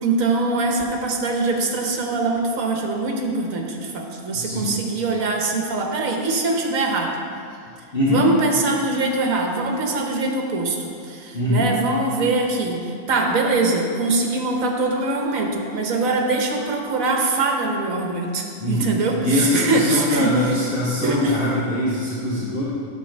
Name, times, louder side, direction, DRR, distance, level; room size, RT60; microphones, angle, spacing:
voice 1, 0.0-7.2 8.1-20.3 21.0-21.4, right 3 dB, 70° right, 2 dB, 1.4 m, -23 dB
voice 2, 4.3-4.7 7.9-8.3 11.3-11.7 18.6-18.9 19.2-22.6, left 1 dB, 40° left, -8 dB, 1.3 m, -22 dB
9.1 x 4.2 x 6.5 m, 2.3 s
omnidirectional pair, 1.5 m